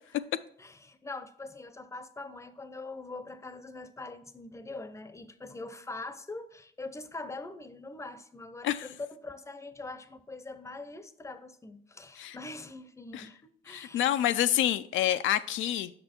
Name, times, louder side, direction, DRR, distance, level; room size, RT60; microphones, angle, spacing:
voice 1, 0.6-14.1, left 2 dB, 15° left, 0.7 m, -43 dB
voice 2, 13.7-15.9, left 12 dB, 75° left, 0.4 m, -27 dB
6.7 x 5.5 x 4.3 m
cardioid pair, 90°, 20 cm